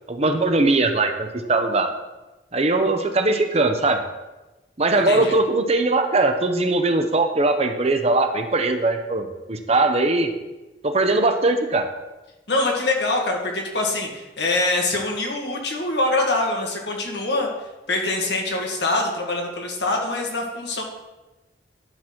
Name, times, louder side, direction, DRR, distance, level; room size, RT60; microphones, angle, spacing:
voice 1, 0.1-1.9 2.5-4.0 4.8-10.3 10.8-11.9, right 2 dB, 35° right, 6 dB, 0.8 m, -20 dB
voice 2, 5.1-5.4 12.5-17.5 17.9-20.8, left 2 dB, 75° left, 1 dB, 1.8 m, -24 dB
11.5 x 4.1 x 6.0 m, 1.1 s
head